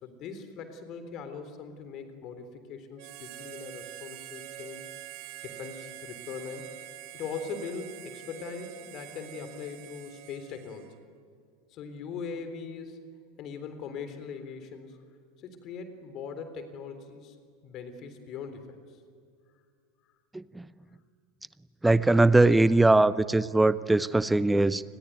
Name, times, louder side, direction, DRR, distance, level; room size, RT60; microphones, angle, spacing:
voice 1, 0.0-4.8 5.2-6.7 7.1-11.0 11.7-13.0 13.4-15.0 15.4-17.4 17.6-19.0, left 5 dB, 40° left, 9 dB, 3.6 m, -40 dB
Harmonica, 3.0-11.0, right 13 dB, 50° right, 1.6 m, -45 dB
voice 2, 20.3-20.7 21.8-24.8, right 2 dB, 5° right, 17 dB, 0.8 m, -21 dB
29.0 x 21.0 x 9.5 m, 2.2 s
figure-of-eight pair, 85°, 0 cm